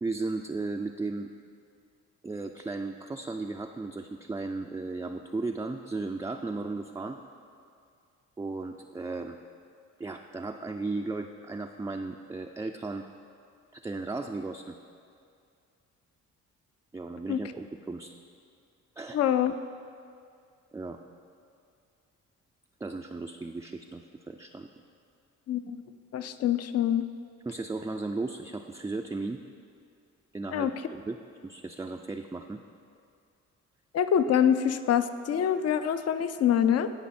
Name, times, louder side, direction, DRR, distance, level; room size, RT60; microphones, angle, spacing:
voice 1, 0.0-1.3 2.2-7.2 8.4-9.4 10.0-13.1 13.7-14.8 16.9-18.1 19.0-19.2 20.7-21.0 22.8-24.7 27.5-29.4 30.3-31.2 31.4-32.6, right 3 dB, 10° right, 3 dB, 0.3 m, -35 dB
voice 2, 19.1-19.5 25.5-25.8 26.1-27.1 30.5-30.7 33.9-36.9, left 9 dB, 55° left, 11 dB, 0.5 m, -25 dB
16.0 x 5.4 x 4.3 m, 2.4 s
cardioid pair, 90°, 30 cm